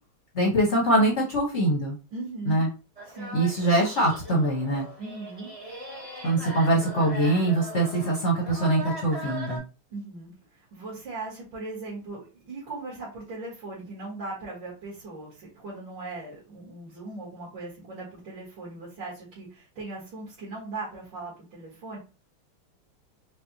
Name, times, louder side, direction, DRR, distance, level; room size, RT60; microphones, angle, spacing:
voice 1, 0.3-2.0 2.4-2.7 3.3-4.8 6.2-9.6, right 1 dB, 50° left, -2 dB, 0.9 m, -23 dB
voice 2, 2.1-2.7 3.0-3.4 5.0-5.5 9.9-22.0, right 3 dB, 60° right, -9 dB, 2.4 m, -39 dB
sound 1, 3.0-9.6, right 1 dB, 35° right, 0.6 m, -39 dB
5.4 x 2.3 x 2.7 m, 0.32 s
omnidirectional pair, 2.4 m